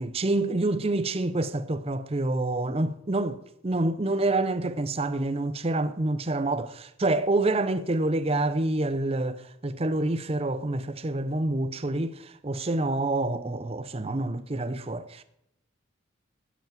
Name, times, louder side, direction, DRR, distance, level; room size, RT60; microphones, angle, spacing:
voice 1, 0.0-15.2, right 2 dB, 30° right, 0.6 m, -27 dB
13.0 x 8.2 x 7.4 m
head